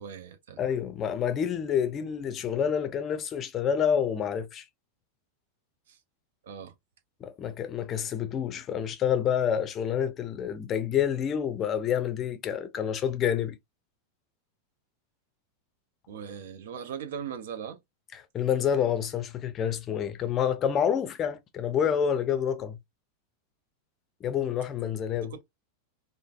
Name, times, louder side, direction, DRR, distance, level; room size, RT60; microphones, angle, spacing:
voice 1, 0.0-0.6 5.9-6.0 6.4-6.7 16.1-17.8 24.8-25.4, right 7 dB, 60° right, 0.5 m, -40 dB
voice 2, 0.6-4.6 7.2-13.6 18.3-22.8 24.2-25.3, left 8 dB, 30° left, 0.5 m, -28 dB
3.2 x 2.1 x 2.3 m
figure-of-eight pair, 90°, 0 cm